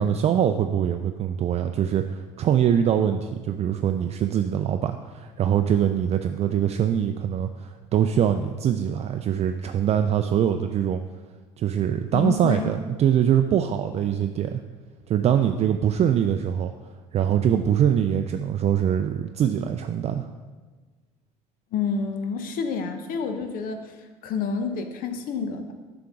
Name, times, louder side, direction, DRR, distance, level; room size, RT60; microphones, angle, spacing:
voice 1, 0.0-11.0 11.6-14.6 15.1-16.7 17.1-20.3, right 9 dB, 40° right, 7 dB, 0.4 m, -23 dB
voice 2, 12.1-12.7 16.0-16.1 21.7-25.7, left 5 dB, 60° left, 7 dB, 0.9 m, -29 dB
7.5 x 5.9 x 3.6 m, 1.3 s
hypercardioid pair, 70°, 16 cm